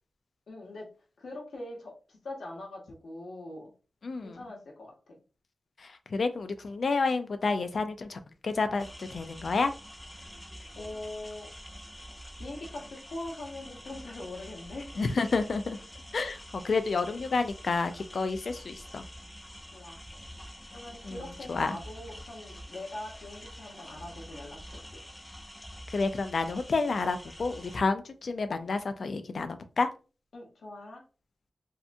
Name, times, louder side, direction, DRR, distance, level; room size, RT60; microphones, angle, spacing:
voice 1, 0.5-0.9 1.2-3.7 4.2-5.2 10.7-11.5 12.3-14.9 19.7-20.0 20.7-25.0 30.3-31.0, left 2 dB, 90° left, -1 dB, 0.8 m, -42 dB
voice 2, 4.0-4.4 5.8-9.7 15.0-15.8 16.1-19.0 21.0-21.8 25.9-29.9, left 4 dB, 65° left, 9 dB, 0.3 m, -30 dB
sound 1, 8.8-27.8, equal, 15° left, 0.6 m, -47 dB
2.7 x 2.2 x 2.5 m, 0.34 s
wide cardioid pair, 115°, 0 cm